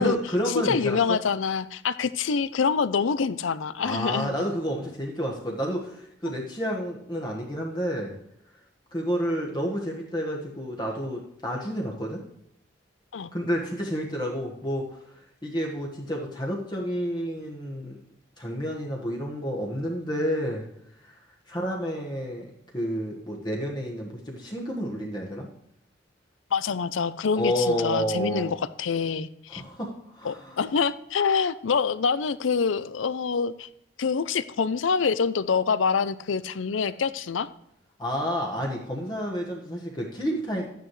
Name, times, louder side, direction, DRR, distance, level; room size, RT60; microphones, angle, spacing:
voice 1, 0.0-1.2 3.8-8.2 8.9-12.2 13.3-18.0 18.4-20.6 21.0-22.5 22.7-25.5 27.3-28.5 29.5-30.6 38.0-40.7, equal, 20° left, -1 dB, 1.3 m, -30 dB
voice 2, 0.6-4.3 6.2-6.3 13.1-13.3 26.5-29.6 30.2-33.7 34.0-37.5, left 5 dB, 85° left, 15 dB, 0.5 m, -26 dB
12.0 x 9.3 x 3.2 m, 0.77 s
head